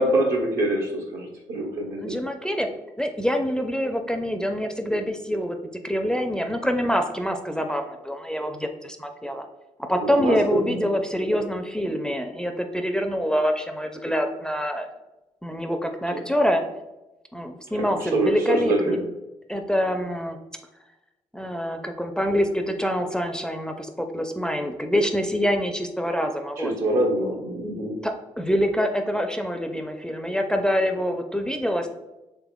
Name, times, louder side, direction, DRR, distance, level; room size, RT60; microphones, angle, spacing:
voice 1, 0.0-2.2 10.0-10.4 10.7-10.8 18.0-19.0 26.6-28.0, right 1 dB, 75° right, -2 dB, 1.0 m, -25 dB
voice 2, 2.0-2.7 3.0-5.6 5.8-9.5 9.9-14.9 15.4-16.6 17.3-19.0 19.5-20.4 21.3-26.7 28.0-31.9, equal, 5° left, 5 dB, 0.4 m, -25 dB
3.4 x 3.3 x 2.2 m, 1.0 s
hypercardioid pair, 45°, 14 cm